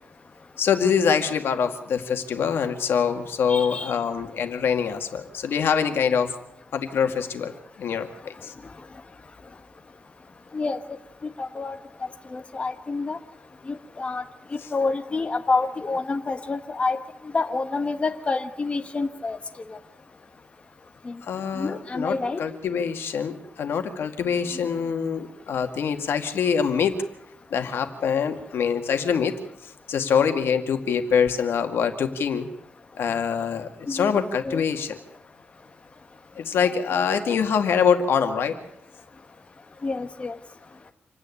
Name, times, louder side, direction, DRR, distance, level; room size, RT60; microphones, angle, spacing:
voice 1, 0.6-6.3 6.7-8.5 21.2-26.9 27.5-29.3 29.6-32.5 33.0-35.0 36.4-38.6, left 7 dB, 85° left, 6 dB, 2.1 m, -24 dB
voice 2, 3.5-3.9 10.5-10.8 11.2-13.2 13.7-14.2 14.5-17.0 17.3-19.4 19.7-19.8 21.0-21.1 21.6-22.4 24.5-24.7 33.9-34.1 34.4-34.6 36.6-36.7 39.8-40.4, left 3 dB, 30° left, 7 dB, 1.3 m, -28 dB
27.0 x 9.9 x 9.8 m, 0.82 s
wide cardioid pair, 120°, 4 cm